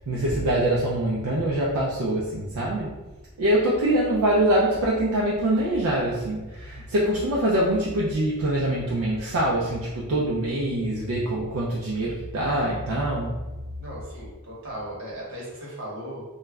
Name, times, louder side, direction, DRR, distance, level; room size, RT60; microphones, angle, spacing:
voice 1, 0.1-3.0 3.4-13.3, right 1 dB, 75° right, -4 dB, 0.4 m, -24 dB
voice 2, 13.8-16.2, right 1 dB, 60° right, -5 dB, 0.9 m, -37 dB
2.2 x 2.1 x 3.4 m, 1.1 s
head